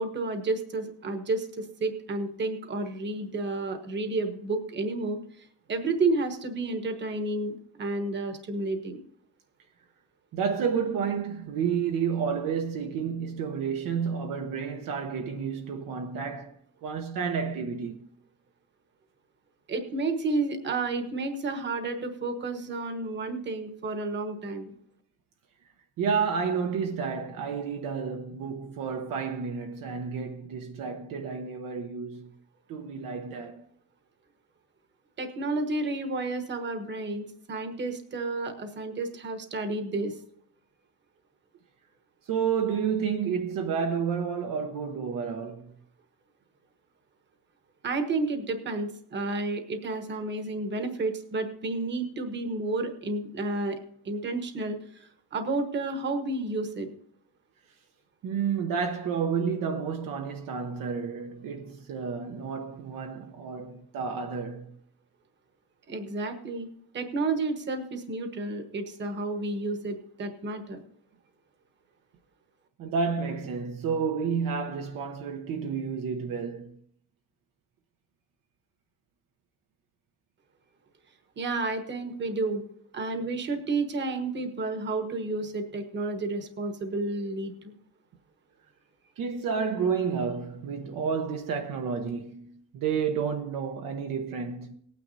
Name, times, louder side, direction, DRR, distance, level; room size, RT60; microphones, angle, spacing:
voice 1, 0.0-9.0 19.7-24.7 35.2-40.2 47.8-53.8 54.0-56.9 65.9-66.7 66.9-70.8 81.4-82.6 82.9-87.7, right 3 dB, 25° right, 1.2 m, -31 dB
voice 2, 10.3-16.5 16.8-18.1 26.0-32.3 32.7-33.6 42.3-45.7 58.2-64.7 72.8-76.8 89.2-94.7, right 6 dB, 55° right, 0.9 m, -30 dB
19.0 x 9.4 x 2.7 m
cardioid pair, 175°, 40 cm